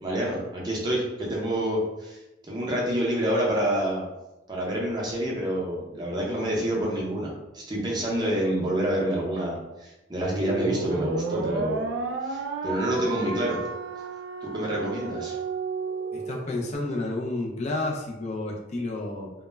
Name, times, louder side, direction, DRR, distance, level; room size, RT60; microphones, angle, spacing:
voice 1, 0.0-4.1 4.5-11.8 12.2-13.6 14.4-15.4, right 1 dB, 20° right, -4 dB, 0.6 m, -28 dB
sound 1, 10.2-16.7, right 3 dB, 85° right, 0.3 m, -32 dB
voice 2, 16.1-19.3, left 2 dB, 35° left, 0 dB, 0.3 m, -30 dB
2.1 x 2.0 x 3.2 m, 1.0 s
head